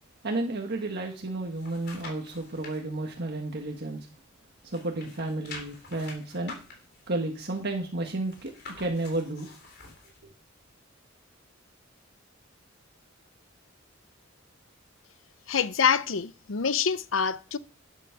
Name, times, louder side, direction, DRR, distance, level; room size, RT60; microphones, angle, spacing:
voice 1, 0.2-4.1 4.6-6.6 7.1-8.5 8.8-9.5, right 2 dB, 55° right, 1.6 m, -32 dB
sound 1, 1.2-2.8 3.3-4.4 4.6-10.2 10.6-10.7, left 3 dB, 55° left, 3.9 m, -47 dB
voice 2, 15.5-17.6, left 7 dB, 75° left, 0.7 m, -26 dB
11.5 x 8.2 x 5.9 m
head